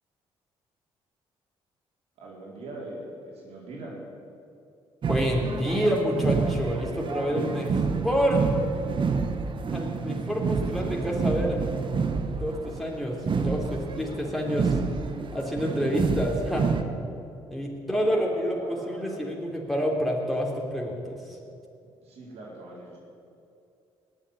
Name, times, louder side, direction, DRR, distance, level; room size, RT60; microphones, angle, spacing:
voice 1, 2.2-4.0 13.9-14.6 17.9-19.3 22.0-23.0, right 1 dB, 70° right, -4 dB, 4.4 m, -42 dB
sound 1, 5.0-16.8, right 5 dB, 50° right, 1.4 m, -28 dB
voice 2, 5.1-8.4 9.7-11.6 12.2-14.8 15.3-16.7 17.5-21.4, equal, ahead, -1 dB, 3.2 m, -28 dB
19.5 x 7.3 x 9.8 m, 2.6 s
supercardioid pair, 70°, 11 cm